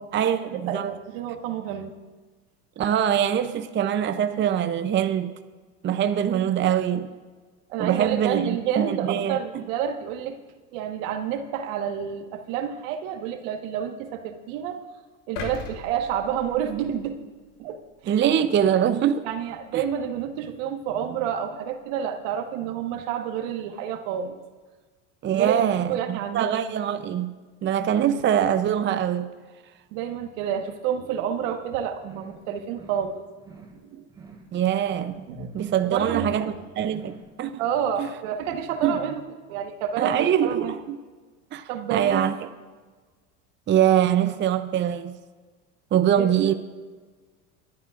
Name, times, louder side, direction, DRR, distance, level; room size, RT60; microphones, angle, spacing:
voice 1, 0.1-0.9 2.8-5.3 5.8-7.1 7.8-8.4 8.8-9.6 18.1-19.3 19.7-19.8 25.2-27.3 27.6-29.3 34.5-35.3 35.5-37.5 38.0-38.1 38.8-38.9 40.0-41.0 41.5-42.3 43.7-45.1 45.9-46.5, right 9 dB, 30° right, 0.7 m, -23 dB
voice 2, 0.6-1.9 7.7-10.4 10.7-14.8 15.3-17.2 17.6-18.2 19.2-24.4 25.3-26.5 29.9-33.2 33.7-34.0 35.3-35.5 35.8-36.5 36.9-37.0 37.6-39.2 39.5-40.7 41.7-42.3 46.1-46.5, right 8 dB, 70° right, 1.5 m, -29 dB
sound 1, 15.4-17.5 18.0-18.1, left 4 dB, 75° left, 2.4 m, -38 dB
sound 2, 32.0-32.4 32.7-33.1 33.4-33.8 34.1-34.5 34.8-35.2 35.5-35.9 36.2-36.6 36.9-37.3, right 4 dB, 10° right, 2.6 m, -47 dB
24.5 x 11.5 x 2.5 m
supercardioid pair, 95°, 39 cm